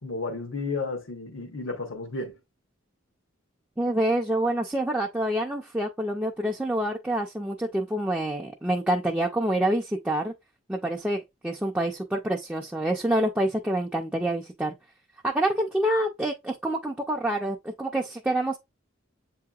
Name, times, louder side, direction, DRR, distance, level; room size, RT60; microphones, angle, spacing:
voice 1, 0.0-2.4, left 3 dB, 80° left, 1.0 m, -32 dB
voice 2, 3.8-10.3 10.7-14.7 15.2-18.6, right 1 dB, 5° right, 0.4 m, -27 dB
7.5 x 2.8 x 2.3 m
head